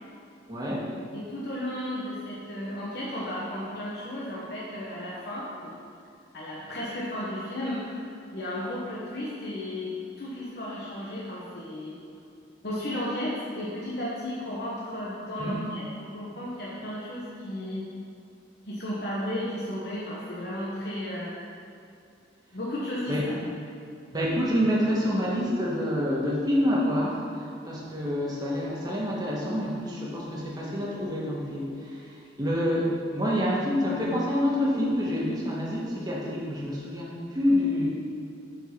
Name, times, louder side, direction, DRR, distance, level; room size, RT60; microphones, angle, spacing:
voice 1, 0.5-1.0 15.4-15.6 23.1-23.3 24.1-37.9, equal, 20° right, -5 dB, 1.6 m, -27 dB
voice 2, 1.1-5.7 6.3-8.0 8.3-11.9 12.6-17.8 18.7-21.3 22.5-23.4, left 1 dB, 60° left, -7 dB, 1.3 m, -34 dB
7.9 x 4.8 x 6.0 m, 2.6 s
head